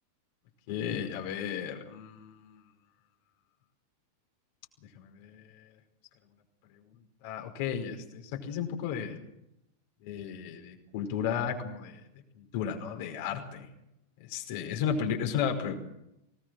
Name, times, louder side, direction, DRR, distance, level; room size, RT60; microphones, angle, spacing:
voice 1, 0.7-2.5 5.0-5.6 7.2-9.2 10.0-12.0 12.3-13.7 14.2-15.7, left 8 dB, 50° left, 3 dB, 5.3 m, -34 dB
25.0 x 19.5 x 6.4 m, 0.84 s
figure-of-eight pair, 90°, 0 cm